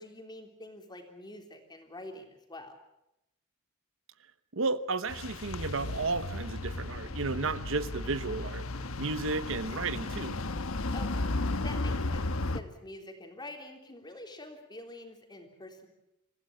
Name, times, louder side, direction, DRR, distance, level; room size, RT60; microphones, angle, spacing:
voice 1, 0.0-2.8 10.9-11.2 11.6-12.2 12.5-15.9, left 1 dB, 20° left, 4 dB, 3.5 m, -46 dB
voice 2, 4.5-8.7 9.0-10.4, right 3 dB, 70° right, 13 dB, 1.0 m, -33 dB
sound 1, 5.1-12.6, left 2 dB, 80° left, 1.2 m, -34 dB
27.0 x 15.5 x 8.7 m, 0.87 s
head